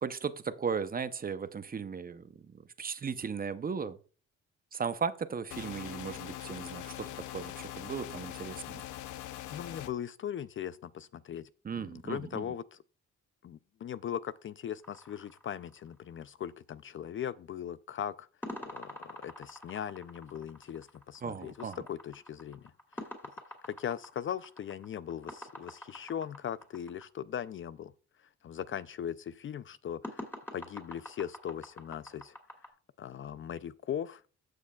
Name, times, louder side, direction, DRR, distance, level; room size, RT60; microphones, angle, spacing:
voice 1, 0.0-2.3 2.8-4.0 4.7-8.6 11.6-12.4 21.2-21.8, right 6 dB, 30° right, 0.6 m, -36 dB
sound 1, 5.5-9.9, left 13 dB, 80° left, 0.7 m, -42 dB
voice 2, 9.5-11.5 11.7-12.8 13.4-18.3 18.7-23.1 23.6-27.9 28.4-30.2 30.5-32.3 33.0-34.2, left 9 dB, 45° left, 0.4 m, -39 dB
sound 2, 14.8-16.2 18.4-27.0 30.0-32.7, left 1 dB, 5° left, 2.6 m, -46 dB
15.5 x 6.4 x 2.3 m
cardioid pair, 90°, 30 cm